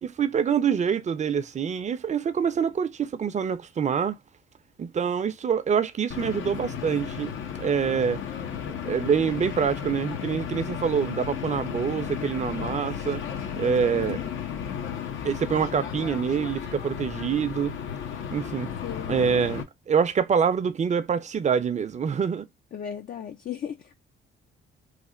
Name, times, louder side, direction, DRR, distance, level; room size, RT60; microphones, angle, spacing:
voice 1, 0.0-4.2 4.8-7.3 7.6-8.2 8.9-13.2 13.6-14.2 15.2-17.8 18.3-18.7 19.1-22.5, right 7 dB, 35° right, 0.6 m, -25 dB
sound 1, 6.1-19.6, left 8 dB, 75° left, 0.9 m, -34 dB
voice 2, 13.9-14.3 18.8-19.2 22.7-24.0, left 9 dB, 45° left, 0.5 m, -36 dB
3.3 x 2.4 x 3.7 m
cardioid pair, 90°, 20 cm